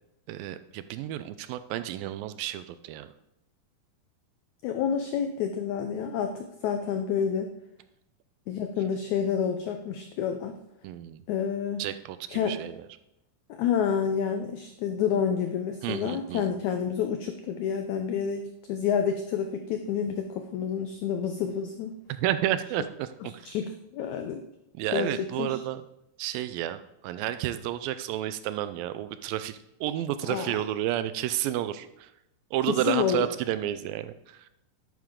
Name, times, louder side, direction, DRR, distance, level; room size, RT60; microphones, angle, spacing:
voice 1, 0.3-3.1 10.8-11.2 11.8-12.8 15.8-16.6 22.1-23.1 23.3-23.5 24.7-25.8 26.2-32.1 32.5-34.5, right 12 dB, 80° right, 12 dB, 2.3 m, -31 dB
voice 2, 4.6-7.5 8.5-10.6 11.3-11.8 12.3-12.6 13.5-18.4 18.7-21.9 23.2-24.4 24.9-25.6 30.3-30.5 32.6-33.3, left 7 dB, 85° left, 6 dB, 1.6 m, -29 dB
11.0 x 8.7 x 3.7 m, 0.84 s
omnidirectional pair, 4.2 m